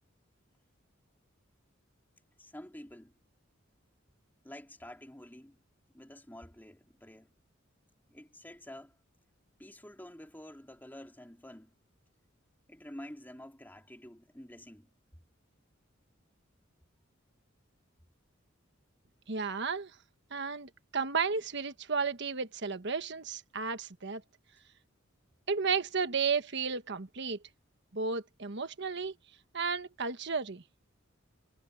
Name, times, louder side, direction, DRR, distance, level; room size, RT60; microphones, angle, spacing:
voice 1, 2.4-3.1 4.4-5.6 5.9-7.3 8.1-9.0 9.6-11.7 12.7-14.9, left 1 dB, 10° left, 2.7 m, -49 dB
voice 2, 19.3-19.9 20.3-24.2 25.5-27.4 27.9-29.1 29.5-30.6, right 5 dB, 60° right, 1.3 m, -33 dB
head